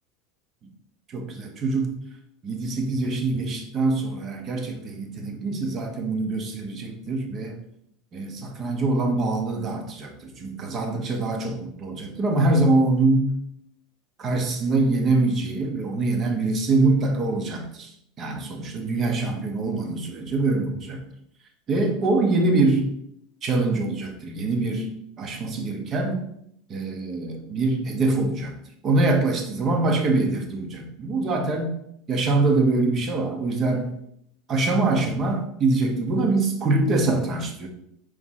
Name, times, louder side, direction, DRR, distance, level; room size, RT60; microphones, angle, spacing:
voice 1, 1.1-2.0 2.4-7.6 8.1-13.4 14.2-17.9 18.2-21.0 21.7-22.9 23.4-24.9 25.2-26.3 26.7-28.5 28.8-31.8 32.1-33.9 34.5-37.7, right 2 dB, 25° right, 4 dB, 0.9 m, -24 dB
4.9 x 3.6 x 5.6 m, 0.74 s
supercardioid pair, 170°, 0 cm